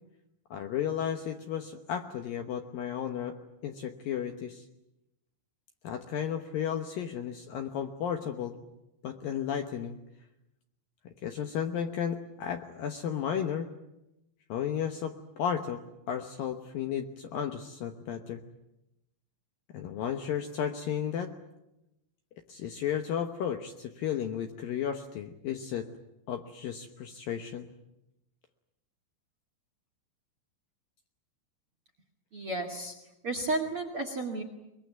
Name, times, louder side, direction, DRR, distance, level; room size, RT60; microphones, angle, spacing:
voice 1, 0.5-3.4 3.6-4.6 5.8-8.6 9.0-10.0 11.1-13.7 14.5-18.4 19.7-21.3 22.5-25.9 26.3-27.7, left 8 dB, 70° left, 6 dB, 2.3 m, -33 dB
voice 2, 32.3-32.9 33.2-34.4, right 2 dB, 45° right, 5 dB, 1.9 m, -32 dB
23.5 x 22.0 x 9.3 m, 0.92 s
omnidirectional pair, 5.4 m